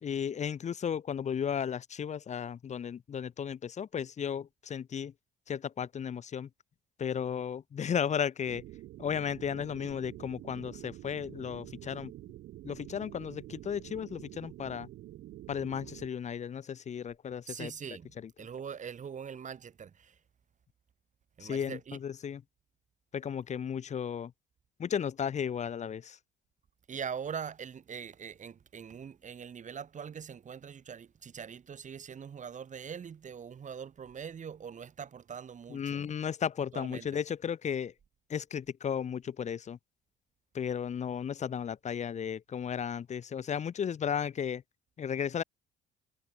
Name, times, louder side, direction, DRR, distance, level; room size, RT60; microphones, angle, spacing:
voice 1, 0.0-5.1 5.5-6.5 7.0-8.6 9.0-12.1 12.6-14.9 15.5-17.7 18.2-18.3 21.4-22.4 23.1-24.3 24.8-26.2 35.7-37.9 38.3-39.8 40.5-44.6 45.0-45.4, left 8 dB, 40° left, 0.9 m, -34 dB
sound 1, 8.5-16.1, right 15 dB, 70° right, 1.7 m, -48 dB
voice 2, 17.5-20.2 21.4-22.0 26.9-36.1 36.7-37.1, right 7 dB, 45° right, 2.7 m, -42 dB
supercardioid pair, 75°, 18 cm